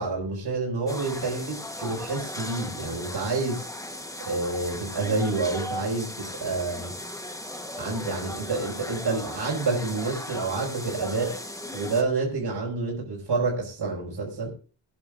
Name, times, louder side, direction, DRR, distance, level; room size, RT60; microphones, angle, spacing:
voice 1, 0.0-3.7 4.3-6.9 7.8-11.3 11.7-14.5, right 3 dB, 55° right, -3 dB, 5.4 m, -28 dB
sound 1, 0.9-12.0, left 1 dB, 5° left, 1.2 m, -37 dB
23.5 x 10.5 x 2.5 m, 0.37 s
wide cardioid pair, 175°, 47 cm